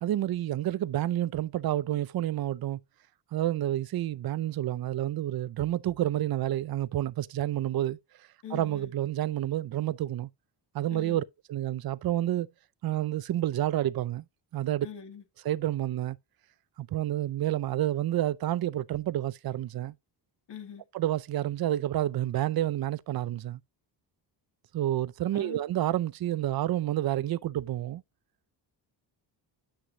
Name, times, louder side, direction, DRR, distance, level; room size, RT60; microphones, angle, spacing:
voice 1, 0.0-2.8 3.3-8.0 8.5-10.3 10.7-11.2 11.5-12.5 12.8-14.2 14.5-14.9 15.4-16.2 16.8-19.9 20.9-23.6 24.7-28.0, right 13 dB, 50° right, 0.6 m, -29 dB
voice 2, 8.4-8.9 10.9-11.2 14.8-15.2 20.5-20.8 25.3-25.6, left 8 dB, 60° left, 2.8 m, -43 dB
9.7 x 6.3 x 2.8 m
cardioid pair, 110°, 46 cm